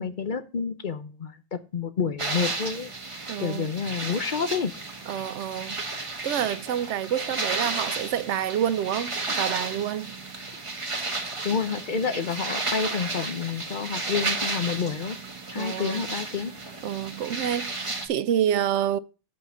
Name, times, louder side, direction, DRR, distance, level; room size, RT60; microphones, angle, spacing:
voice 1, 0.0-4.7 11.4-15.2 15.5-16.5, left 6 dB, 50° left, 0.9 m, -29 dB
sound 1, 2.2-18.1, right 3 dB, 30° right, 1.3 m, -33 dB
voice 2, 3.3-3.7 5.1-5.8 6.2-10.1 15.6-16.1 16.8-19.0, right 10 dB, 90° right, 0.9 m, -28 dB
8.0 x 4.3 x 7.1 m
omnidirectional pair, 1.2 m